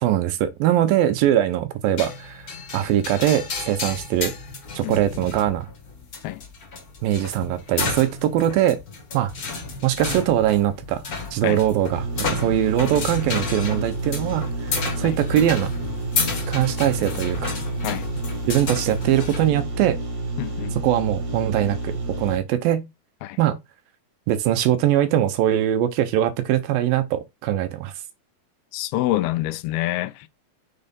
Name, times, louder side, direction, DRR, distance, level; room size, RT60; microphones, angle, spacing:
voice 1, 0.0-4.3 4.8-5.7 7.0-8.8 9.1-9.3 9.8-11.0 11.3-15.7 16.5-17.5 18.5-20.0 20.7-22.9 23.4-23.6 24.3-27.9, right 12 dB, 75° right, 2.6 m, -22 dB
sound 1, 2.0-19.5, left 4 dB, 45° left, 1.2 m, -32 dB
sound 2, 11.9-22.4, right 2 dB, 50° right, 3.0 m, -29 dB
voice 2, 20.4-20.8 23.2-23.4 28.7-30.3, left 16 dB, 85° left, 2.6 m, -26 dB
6.6 x 4.3 x 5.3 m
omnidirectional pair, 4.3 m